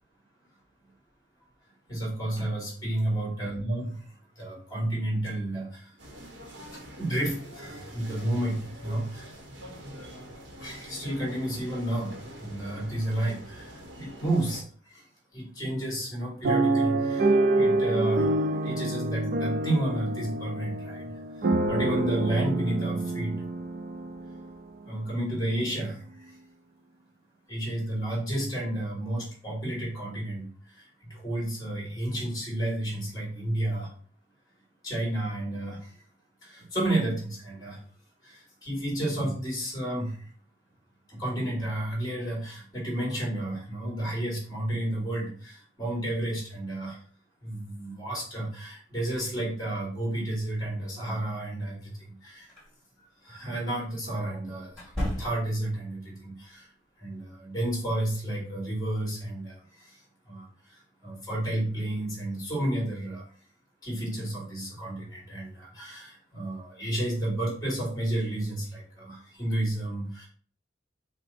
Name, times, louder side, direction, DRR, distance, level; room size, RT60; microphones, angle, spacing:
voice 1, 1.9-6.0 6.7-9.4 10.6-15.0 15.3-23.5 24.9-26.4 27.5-33.9 34.8-36.0 36.4-37.8 38.2-40.3 41.1-47.0 47.4-52.5 53.2-56.7 57.0-63.3 63.8-70.3, right 1 dB, 20° left, -3 dB, 2.2 m, -31 dB
sound 1, 6.0-14.6, equal, 70° right, 1.0 m, -45 dB
sound 2, 16.4-24.5 25.1-25.2 25.5-25.8, right 2 dB, 50° right, 0.4 m, -27 dB
sound 3, 52.5-52.7 54.7-55.7, equal, 5° left, 1.9 m, -33 dB
5.4 x 2.2 x 4.2 m, 0.44 s
head